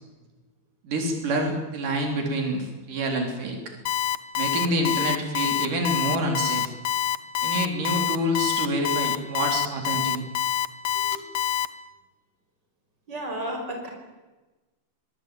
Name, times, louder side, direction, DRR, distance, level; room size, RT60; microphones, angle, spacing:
voice 1, 0.8-3.7 4.4-6.7 7.4-10.3 10.9-11.3, right 1 dB, 85° right, 3 dB, 5.2 m, -27 dB
Alarm, 3.9-11.7, left 9 dB, 65° left, 1.6 m, -25 dB
voice 2, 13.1-13.9, right 1 dB, 30° right, 2 dB, 5.8 m, -32 dB
24.0 x 20.5 x 9.1 m, 1.2 s
omnidirectional pair, 3.6 m